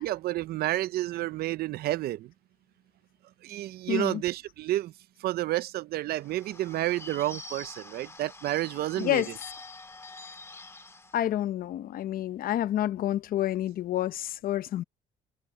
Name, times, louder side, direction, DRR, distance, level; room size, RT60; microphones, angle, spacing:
voice 1, 0.0-2.3 3.4-4.9 5.2-9.2, right 15 dB, 65° right, 0.6 m, -30 dB
voice 2, 3.9-4.2 9.0-9.3 11.1-14.8, left 12 dB, 60° left, 0.7 m, -29 dB
Bird / Bell, 6.2-11.2, left 2 dB, 15° left, 1.8 m, -46 dB
cardioid pair, 110°, 17 cm